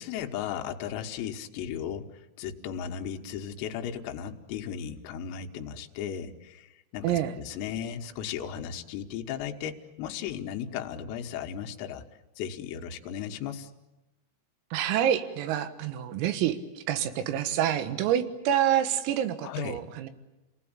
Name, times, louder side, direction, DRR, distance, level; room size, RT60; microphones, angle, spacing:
voice 1, 0.0-12.0 12.4-13.7 19.4-19.8, left 8 dB, 90° left, 4 dB, 4.0 m, -36 dB
voice 2, 7.0-7.4 14.7-20.1, right 10 dB, 85° right, 11 dB, 4.2 m, -27 dB
30.0 x 19.5 x 8.7 m, 1.0 s
omnidirectional pair, 5.9 m